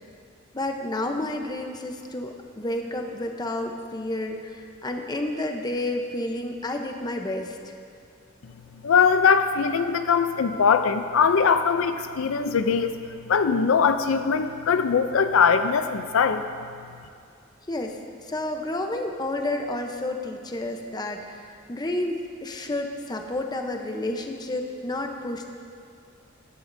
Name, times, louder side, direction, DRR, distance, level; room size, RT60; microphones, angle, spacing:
voice 1, 0.5-7.6 17.7-18.0 18.2-25.5, left 1 dB, 20° left, 4 dB, 0.8 m, -30 dB
voice 2, 8.8-12.9 13.3-16.4, left 6 dB, 80° left, 9 dB, 0.5 m, -21 dB
15.5 x 11.0 x 2.7 m, 2.5 s
head